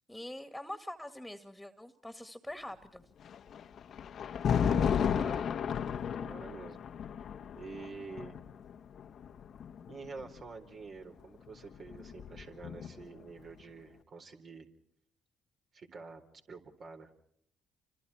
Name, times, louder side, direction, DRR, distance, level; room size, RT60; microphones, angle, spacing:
voice 1, 0.1-3.0, left 1 dB, 5° left, 9 dB, 2.1 m, -44 dB
Thunder, 3.2-10.4 11.5-13.2, left 7 dB, 60° left, 1.1 m, -34 dB
voice 2, 4.7-5.5 6.1-6.8 7.6-8.4 9.9-14.7 15.7-16.2 16.5-17.1, right 4 dB, 50° right, 4 dB, 4.2 m, -47 dB
30.0 x 25.5 x 4.4 m, 0.68 s
supercardioid pair, 70°, 0 cm